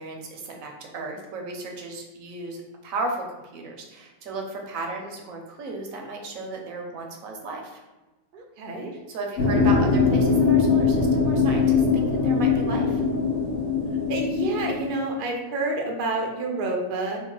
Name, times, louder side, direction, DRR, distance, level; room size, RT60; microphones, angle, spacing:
voice 1, 0.0-3.2 3.5-7.8 9.1-13.0, right 3 dB, 75° right, 1 dB, 1.1 m, -34 dB
voice 2, 8.3-8.9 14.1-17.2, right 2 dB, 60° right, 1 dB, 0.5 m, -28 dB
sound 1, 9.4-14.9, left 5 dB, 45° left, 1.2 m, -21 dB
2.9 x 2.1 x 3.8 m, 1.1 s
omnidirectional pair, 1.5 m